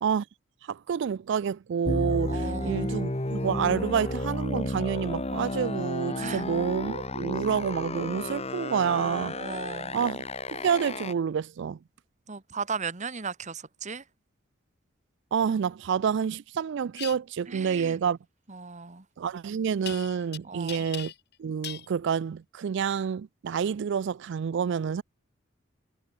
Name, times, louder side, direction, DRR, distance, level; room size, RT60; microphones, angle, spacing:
voice 1, 0.7-9.4 9.9-10.2 10.5-11.8 15.3-18.2 19.2-21.1 21.4-25.0, right 7 dB, 60° right, 0.3 m, -28 dB
sound 1, 1.9-11.1, left 2 dB, 30° left, 1.8 m, -32 dB
voice 2, 2.3-3.0 6.2-6.4 9.3-10.0 12.3-14.0 17.5-18.0 18.5-19.0 20.4-20.8, right 5 dB, 35° right, 1.3 m, -36 dB
sound 2, 16.9-17.2 19.9-20.4 20.7-21.3 21.6-21.9, left 11 dB, 55° left, 4.2 m, -38 dB
head